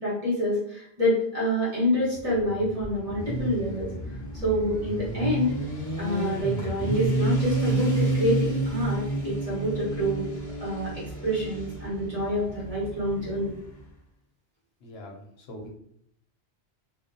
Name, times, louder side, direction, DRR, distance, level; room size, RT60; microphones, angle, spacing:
voice 1, 0.0-3.9 4.4-5.6 6.0-10.3 10.6-13.5, equal, 35° right, -7 dB, 1.1 m, -27 dB
Motorcycle, 2.1-13.8, right 3 dB, 30° left, 0.3 m, -30 dB
voice 2, 14.8-15.7, left 1 dB, 70° left, 0 dB, 0.8 m, -42 dB
2.6 x 2.1 x 2.6 m, 0.69 s
omnidirectional pair, 1.1 m